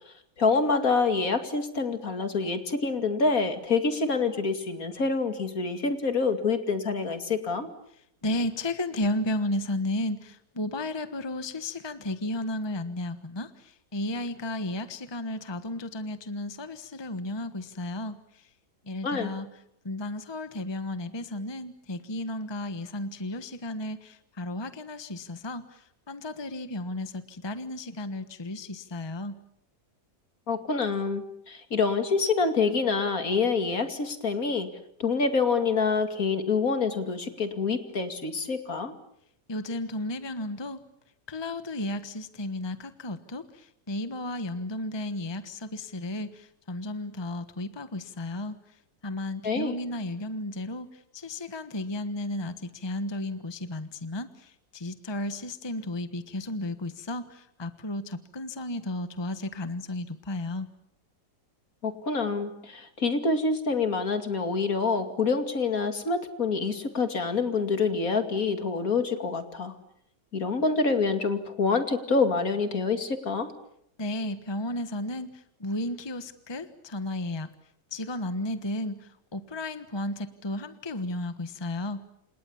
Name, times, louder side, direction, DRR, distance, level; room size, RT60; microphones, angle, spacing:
voice 1, 0.4-7.7 19.0-19.3 30.5-34.7 35.0-38.9 49.4-49.7 61.8-69.7 70.3-73.5, left 4 dB, 60° left, 8 dB, 2.9 m, -26 dB
voice 2, 8.2-18.5 18.9-19.5 19.8-29.4 39.5-40.8 41.3-48.6 49.0-60.7 74.0-77.5 77.9-82.0, left 1 dB, 15° left, 11 dB, 1.2 m, -33 dB
29.0 x 27.5 x 7.2 m, 0.76 s
omnidirectional pair, 1.7 m